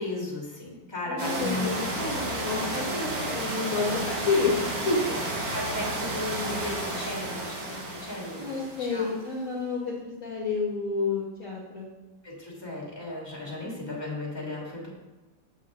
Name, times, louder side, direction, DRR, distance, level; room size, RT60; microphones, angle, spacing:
voice 1, 0.0-1.7 5.5-9.1 12.2-14.9, left 1 dB, 15° left, -4 dB, 2.3 m, -35 dB
voice 2, 1.0-5.1 8.3-11.9, left 4 dB, 45° left, -4 dB, 1.6 m, -29 dB
sound 1, 1.2-9.2, right 1 dB, 55° right, 1.9 m, -32 dB
8.4 x 7.7 x 3.7 m, 1.1 s
omnidirectional pair, 2.0 m